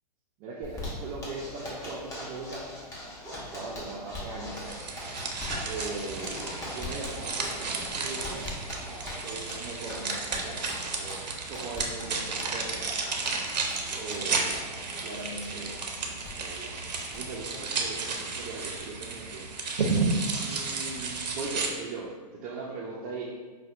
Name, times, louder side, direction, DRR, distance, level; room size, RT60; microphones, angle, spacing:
voice 1, 0.4-2.7 3.4-4.6 5.6-8.5 9.2-10.6 11.0-11.2 11.5-13.0 13.9-14.6 15.0-15.8 16.4-16.7 17.1-19.5 20.4-23.2, right 3 dB, 35° right, -4 dB, 0.5 m, -39 dB
Zipper (clothing), 0.6-18.8 19.1-19.2 19.5-19.6 19.9-20.4, left 1 dB, 15° left, 1.0 m, -41 dB
sound 1, 4.5-21.7, right 4 dB, 85° right, 0.6 m, -33 dB
5.4 x 2.2 x 2.5 m, 1.4 s
hypercardioid pair, 120°, 21 cm